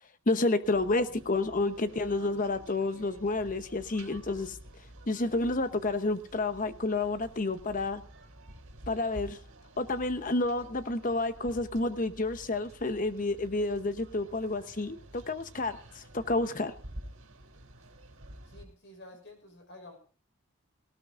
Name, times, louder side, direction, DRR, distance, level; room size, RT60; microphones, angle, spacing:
voice 1, 0.3-4.6 5.1-8.0 8.9-9.4 9.8-16.7, left 2 dB, 35° left, 11 dB, 0.9 m, -30 dB
sound 1, 0.6-18.6, right 1 dB, 65° right, 3.6 m, -50 dB
voice 2, 18.4-20.0, left 1 dB, 55° left, 4 dB, 5.9 m, -50 dB
18.5 x 18.0 x 2.5 m, 0.38 s
head